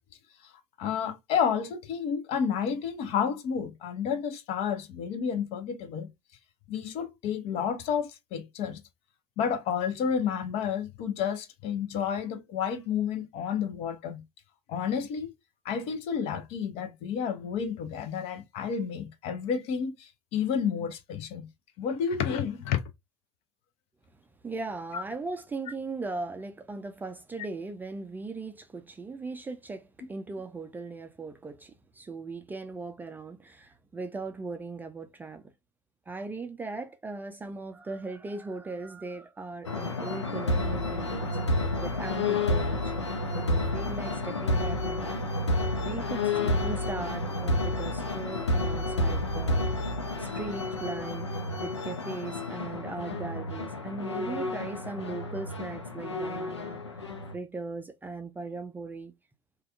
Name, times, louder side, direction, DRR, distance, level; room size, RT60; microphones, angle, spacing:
voice 1, 0.8-6.1 6.7-8.8 9.4-14.2 14.7-15.3 15.6-21.5 21.8-22.8 24.9-25.0, left 7 dB, 45° left, 0.7 m, -30 dB
voice 2, 24.4-35.4 36.1-43.0 43.3-51.3 51.6-57.0 57.3-59.1, right 3 dB, 10° right, 0.4 m, -39 dB
sound 1, 39.6-57.3, left 2 dB, 80° left, 0.6 m, -30 dB
3.4 x 2.3 x 2.3 m
figure-of-eight pair, 75°, 15 cm